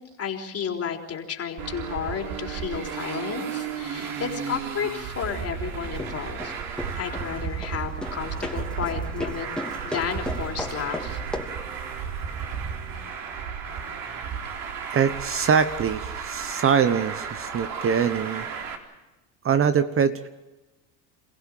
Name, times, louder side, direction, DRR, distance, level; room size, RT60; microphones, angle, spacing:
voice 1, 0.2-6.5 6.9-9.5 9.8-11.2, left 7 dB, 35° left, 3 dB, 4.0 m, -32 dB
Traffic noise roadway noise, 1.6-18.8, right 7 dB, 55° right, 4.1 m, -33 dB
sound 1, 5.8-11.7, left 1 dB, ahead, 3.0 m, -36 dB
voice 2, 14.9-18.5 19.4-20.3, right 7 dB, 30° right, 12 dB, 1.1 m, -23 dB
28.0 x 16.0 x 9.1 m, 1.1 s
supercardioid pair, 95°, 41 cm